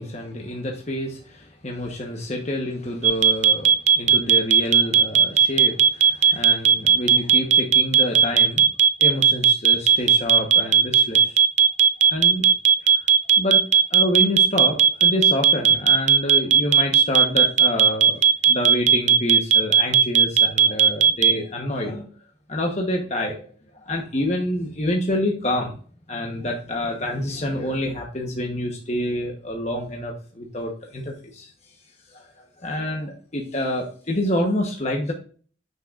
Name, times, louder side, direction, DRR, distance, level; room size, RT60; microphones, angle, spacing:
voice 1, 0.0-8.6 9.0-11.4 12.1-12.5 12.8-12.9 13.4-13.6 13.9-18.2 18.5-22.1 22.5-23.5 23.7-25.8 26.1-31.5 32.1-35.1, left 1 dB, 35° left, 1 dB, 1.1 m, -27 dB
sound 1, 3.0-21.3, right 8 dB, 40° right, 0.4 m, -15 dB
9.2 x 6.1 x 2.5 m, 0.41 s
head